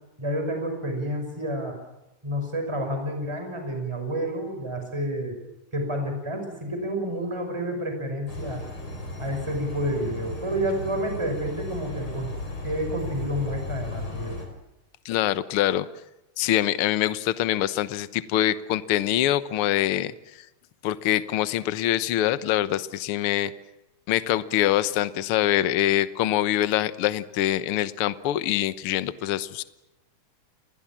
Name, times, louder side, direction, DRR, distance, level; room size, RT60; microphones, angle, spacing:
voice 1, 0.2-1.8 2.2-5.4 5.7-8.6 9.2-12.4 12.6-14.4, equal, 10° right, 4 dB, 5.6 m, -29 dB
sound 1, 8.3-14.5, left 2 dB, 40° left, 5.8 m, -35 dB
voice 2, 15.0-15.9 16.4-20.1 20.8-23.5 24.1-29.6, left 13 dB, 65° left, 14 dB, 1.5 m, -24 dB
29.0 x 21.0 x 7.4 m, 0.93 s
omnidirectional pair, 3.5 m